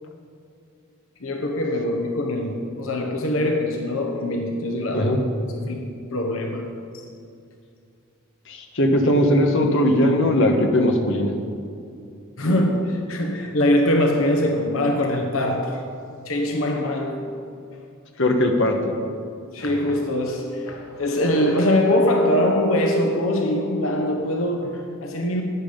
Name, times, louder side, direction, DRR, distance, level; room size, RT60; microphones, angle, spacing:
voice 1, 1.2-5.2 5.6-7.0 12.4-15.8 16.3-17.3 19.5-25.4, left 1 dB, 80° left, 3 dB, 1.1 m, -23 dB
voice 2, 8.5-11.3 18.2-18.9, left 1 dB, 65° left, 3 dB, 1.3 m, -19 dB
12.5 x 9.6 x 5.2 m, 2.5 s
head